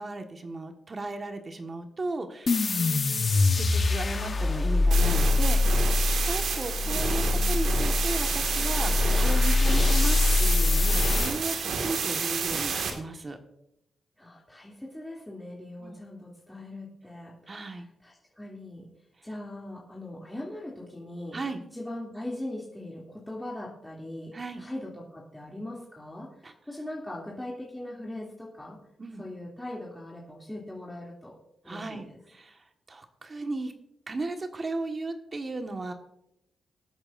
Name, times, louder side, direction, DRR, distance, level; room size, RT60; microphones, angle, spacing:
voice 1, 0.0-2.7 3.5-5.8 6.2-13.4 15.8-16.0 17.5-17.9 21.3-21.6 24.3-24.6 26.4-26.5 29.0-29.2 31.6-33.7 34.1-35.9, right 2 dB, 40° right, 5 dB, 1.6 m, -36 dB
sound 1, 2.5-11.3, left 3 dB, 50° left, 1.2 m, -24 dB
voice 2, 2.7-3.4 6.8-7.6 14.2-18.9 19.2-21.4 21.7-28.8 29.2-31.3 31.6-32.2, left 1 dB, 10° left, -4 dB, 2.9 m, -40 dB
sound 2, 4.9-12.9, right 5 dB, 75° right, 2.0 m, -30 dB
23.0 x 8.8 x 2.6 m, 0.81 s
supercardioid pair, 55°, 0 cm